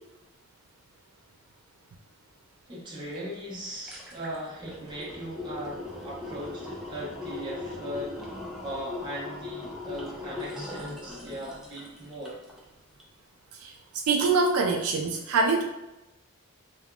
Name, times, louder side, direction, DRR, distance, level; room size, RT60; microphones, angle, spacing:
voice 1, 2.7-8.3 8.6-12.4, equal, 20° right, -6 dB, 0.8 m, -38 dB
sound 1, 3.2-3.3 3.6-12.6 13.0-13.1, left 2 dB, ahead, 0.4 m, -39 dB
voice 2, 14.1-15.6, right 4 dB, 75° right, 2 dB, 0.3 m, -24 dB
3.4 x 2.3 x 2.3 m, 0.99 s
head